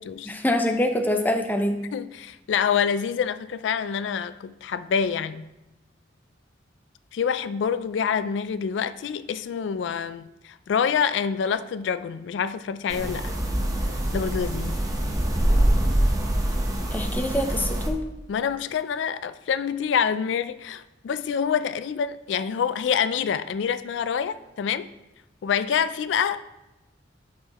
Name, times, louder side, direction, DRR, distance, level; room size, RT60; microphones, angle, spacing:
voice 1, 0.3-1.8 16.9-18.0, left 1 dB, 10° left, 5 dB, 0.6 m, -25 dB
voice 2, 1.9-5.5 7.1-13.3 14.1-14.8 18.3-24.9 25.4-26.5, left 7 dB, 75° left, 13 dB, 0.3 m, -26 dB
sound 1, 12.9-17.9, right 1 dB, 20° right, 0.9 m, -24 dB
11.0 x 6.7 x 2.9 m, 1.0 s
head